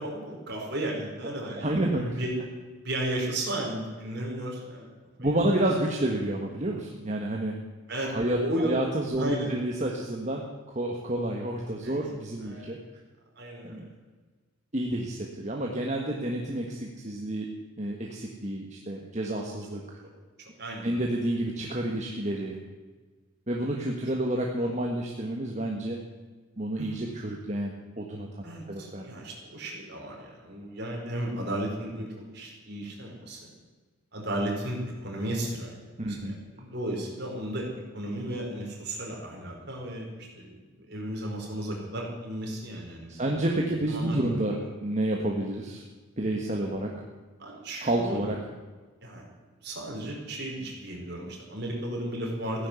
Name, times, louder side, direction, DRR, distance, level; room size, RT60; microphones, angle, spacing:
voice 1, 0.0-1.7 2.2-2.4 2.8-4.9 7.9-8.8 9.2-9.5 11.8-12.0 12.4-12.6 13.4-13.8 20.6-21.0 26.8-27.0 28.4-33.5 34.1-35.8 36.0-37.7 37.9-40.5 40.9-43.3 43.9-44.4 46.6-46.8 47.4-48.2 49.0-49.2 49.6-52.7, right 1 dB, 50° right, -1 dB, 4.9 m, -34 dB
voice 2, 1.5-2.2 5.2-7.5 8.1-12.8 13.6-13.9 14.7-17.5 17.8-19.8 20.8-22.6 23.5-26.0 26.6-29.1 36.0-36.4 43.1-45.8 46.2-46.9 47.8-48.4, right 1 dB, 35° right, 0 dB, 1.6 m, -29 dB
15.5 x 11.0 x 8.3 m, 1.4 s
head